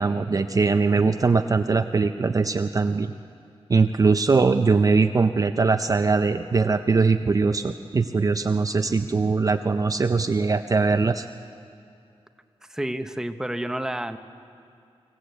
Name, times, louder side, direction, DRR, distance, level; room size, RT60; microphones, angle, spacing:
voice 1, 0.0-3.1 3.7-11.3, right 4 dB, 35° right, 8 dB, 0.5 m, -21 dB
voice 2, 12.7-14.2, right 1 dB, 5° right, 8 dB, 0.8 m, -29 dB
25.0 x 15.5 x 8.3 m, 2.4 s
wide cardioid pair, 135°, 11 cm